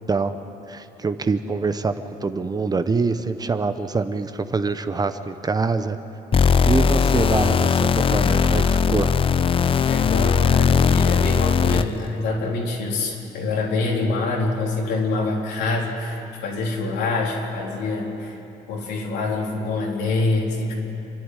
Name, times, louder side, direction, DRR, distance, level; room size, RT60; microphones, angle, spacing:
voice 1, 0.7-6.0 6.7-9.2, right 4 dB, 25° right, 10 dB, 0.9 m, -25 dB
sound 1, 6.3-12.1, left 6 dB, 35° left, 0.5 m, -19 dB
voice 2, 9.8-18.4 18.7-20.7, left 3 dB, 85° left, -2 dB, 4.0 m, -25 dB
27.5 x 11.0 x 9.9 m, 2.9 s
cardioid pair, 110°, 17 cm